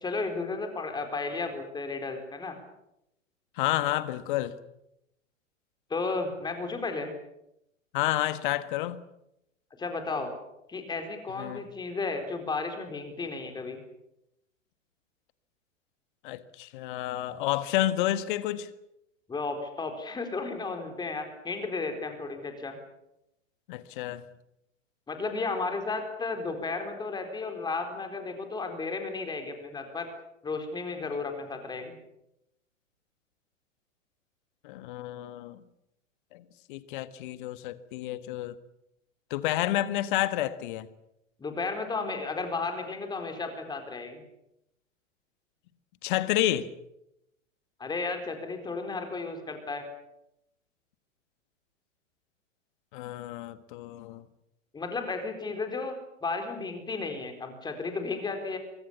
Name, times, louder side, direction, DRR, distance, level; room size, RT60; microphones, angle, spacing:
voice 1, 0.0-2.6 5.9-7.1 9.8-10.3 10.7-13.8 19.3-22.7 25.1-30.1 30.4-32.0 41.4-44.2 47.8-49.9 54.7-56.0 56.2-58.6, left 3 dB, 10° left, 4.3 m, -33 dB
voice 2, 3.6-4.5 7.9-9.0 11.4-11.6 16.2-18.7 23.7-24.2 34.6-35.6 36.3-38.6 39.3-40.9 46.0-46.7 52.9-54.2, left 14 dB, 40° left, 1.6 m, -30 dB
24.0 x 24.0 x 7.2 m
figure-of-eight pair, 105°, 39 cm